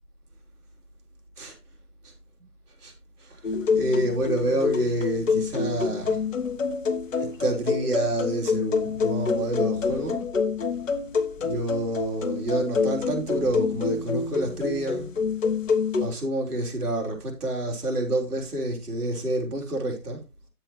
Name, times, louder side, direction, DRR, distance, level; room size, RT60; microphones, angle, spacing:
voice 1, 3.2-6.2 7.2-10.2 11.4-15.1 16.0-20.2, right 1 dB, 70° right, 3.8 m, -28 dB
bali xylophone, 3.4-16.1, left 5 dB, 55° left, 1.1 m, -27 dB
10.5 x 7.6 x 3.2 m
hypercardioid pair, 175°, 47 cm